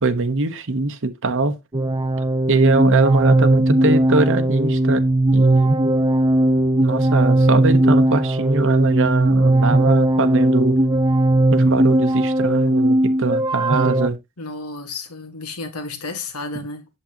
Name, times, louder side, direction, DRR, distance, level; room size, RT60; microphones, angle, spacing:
voice 1, 0.0-1.6 2.5-5.0 5.3-5.8 6.8-10.8 11.5-14.2, right 3 dB, 60° right, 1.1 m, -21 dB
sound 1, 1.7-14.1, right 1 dB, 20° right, 0.5 m, -18 dB
voice 2, 14.4-16.9, left 3 dB, 80° left, 1.7 m, -32 dB
8.3 x 7.4 x 2.9 m
head